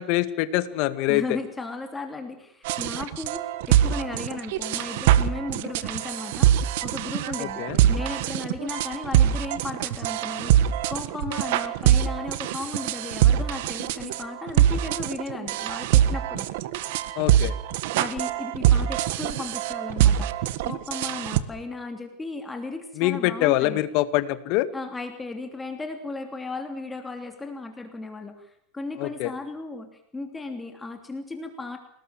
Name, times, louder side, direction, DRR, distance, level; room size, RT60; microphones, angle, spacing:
voice 1, 0.0-1.2 7.4-7.8 17.2-17.5 23.0-24.7 29.0-29.3, left 16 dB, 55° left, 12 dB, 2.1 m, -24 dB
voice 2, 1.1-16.5 18.0-23.8 24.7-31.8, left 3 dB, 10° left, 5 dB, 3.0 m, -35 dB
sound 1, 2.7-21.4, right 11 dB, 70° right, 1.6 m, -23 dB
28.5 x 19.0 x 7.6 m, 0.69 s
supercardioid pair, 130°, 0 cm